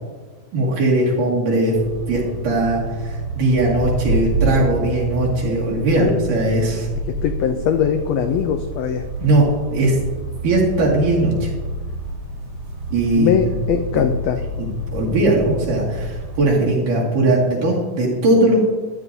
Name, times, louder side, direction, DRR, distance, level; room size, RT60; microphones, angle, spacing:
voice 1, 0.5-1.8 2.1-6.9 9.2-9.4 9.7-10.0 10.4-11.5 12.9-13.3 13.9-14.0 14.6-18.7, right 2 dB, 85° right, -4 dB, 3.7 m, -19 dB
sound 1, 1.7-16.4, right 2 dB, 30° right, 2.0 m, -28 dB
voice 2, 6.0-6.4 6.7-6.8 7.2-9.1 13.2-14.4, left 8 dB, 85° left, 6 dB, 1.4 m, -21 dB
13.5 x 10.5 x 2.7 m, 1.4 s
omnidirectional pair, 3.6 m